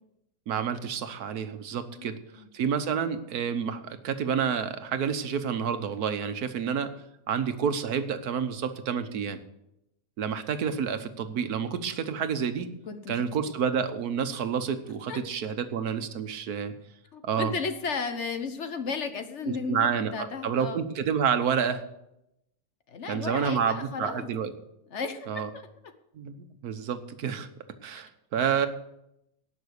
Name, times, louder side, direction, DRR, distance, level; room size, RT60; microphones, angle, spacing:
voice 1, 0.5-2.2 2.5-6.9 7.3-9.4 10.2-12.7 13.1-16.7 17.2-17.5 19.5-21.8 23.1-24.5 25.3-25.5 26.1-27.5 27.8-28.7, right 7 dB, 90° right, 9 dB, 1.5 m, -29 dB
voice 2, 1.9-2.5 12.9-13.4 15.1-15.2 17.1-20.8 22.9-24.3 24.9-25.3 25.5-25.7, left 5 dB, 55° left, 8 dB, 1.3 m, -34 dB
17.5 x 6.1 x 6.5 m, 0.83 s
omnidirectional pair, 1.5 m